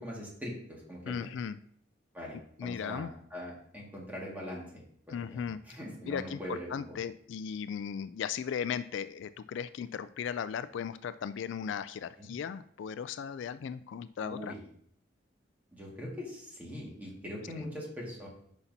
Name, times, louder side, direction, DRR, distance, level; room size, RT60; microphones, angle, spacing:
voice 1, 0.0-1.1 2.1-6.7 12.2-12.3 14.2-14.6 15.7-18.3, left 1 dB, 10° right, -3 dB, 1.8 m, -42 dB
voice 2, 1.1-1.6 2.6-3.1 5.1-5.6 6.1-14.5 17.6-17.7, left 7 dB, 65° left, 13 dB, 0.3 m, -37 dB
9.8 x 5.8 x 2.7 m, 0.66 s
head